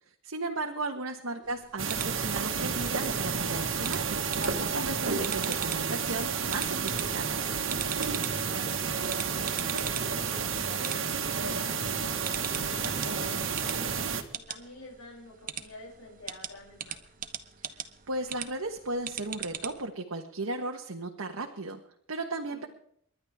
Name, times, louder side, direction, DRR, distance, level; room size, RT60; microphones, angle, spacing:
voice 1, 0.2-7.5 18.1-21.8 22.1-22.7, right 2 dB, 90° right, 2 dB, 1.3 m, -35 dB
sound 1, 1.4-19.9, right 9 dB, 40° right, 1.0 m, -42 dB
sound 2, 1.8-14.2, right 6 dB, 65° right, 1.6 m, -31 dB
voice 2, 8.2-14.0 14.3-17.0 22.5-22.7, left 2 dB, 85° left, -2 dB, 6.8 m, -48 dB
29.0 x 11.5 x 3.6 m, 0.67 s
head